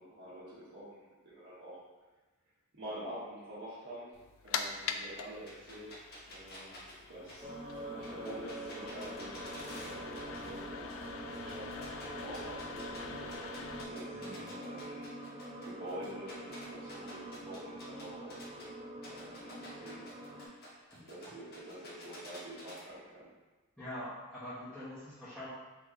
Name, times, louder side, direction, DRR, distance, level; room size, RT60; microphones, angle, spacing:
voice 1, 0.0-1.8 2.7-4.2 4.4-6.8 7.1-7.5 7.9-10.9 11.4-15.1 15.6-18.7 19.1-20.4 21.0-23.3, right 1 dB, 60° right, -12 dB, 1.1 m, -47 dB
sound 1, 4.1-13.8, left 6 dB, 70° left, 0.3 m, -44 dB
sound 2, 5.5-10.6 10.9-13.0 13.3-18.7 19.0-22.8, left 1 dB, 50° left, 0.9 m, -51 dB
sound 3, 7.4-20.5, right 1 dB, 20° right, 0.4 m, -45 dB
voice 2, 14.1-14.5 20.9-21.0 23.8-25.5, left 1 dB, 5° left, -16 dB, 1.0 m, -44 dB
3.5 x 3.0 x 3.7 m, 1.2 s
head